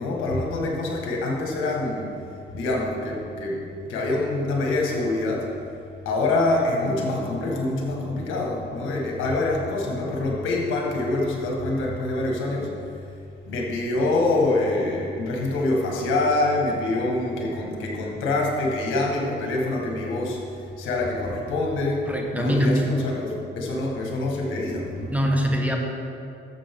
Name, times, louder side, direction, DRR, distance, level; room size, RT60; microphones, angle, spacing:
voice 1, 0.0-2.2 2.5-5.5 6.1-12.7 13.5-20.4 20.8-25.1, left 2 dB, 85° left, -1 dB, 1.8 m, -25 dB
voice 2, 22.1-22.8 25.1-25.8, equal, 5° right, 1 dB, 1.3 m, -22 dB
12.0 x 7.4 x 3.8 m, 2.6 s
cardioid pair, 90°, 20 cm